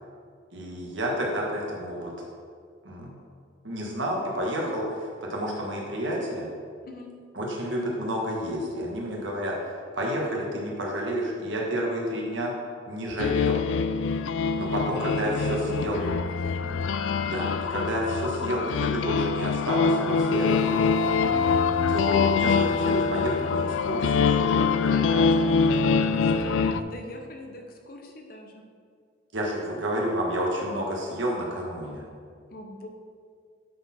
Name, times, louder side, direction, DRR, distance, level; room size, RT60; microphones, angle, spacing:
voice 1, 0.5-2.1 2.8-3.1 3.6-6.5 7.3-12.5 12.9-13.6 14.5-16.0 17.2-20.9 21.9-25.3 29.3-32.0, equal, 80° right, -2 dB, 1.4 m, -30 dB
sound 1, 13.2-26.8, left 5 dB, 85° left, 0.3 m, -24 dB
voice 2, 15.2-17.1 25.3-28.6 32.5-32.9, left 1 dB, 50° left, 3 dB, 0.8 m, -42 dB
10.0 x 4.2 x 4.3 m, 2.1 s
head